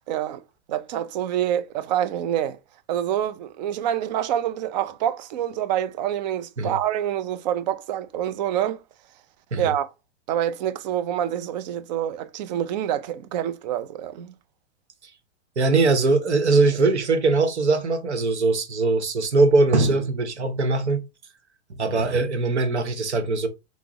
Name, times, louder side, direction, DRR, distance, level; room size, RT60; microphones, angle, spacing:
voice 1, 0.1-0.4 0.7-2.6 2.9-8.8 9.6-9.9 10.3-14.3, right 11 dB, 40° right, 0.4 m, -26 dB
voice 2, 15.6-21.0 21.8-23.5, right 3 dB, 85° right, 0.9 m, -21 dB
5.8 x 2.0 x 2.9 m
hypercardioid pair, 110°, 33 cm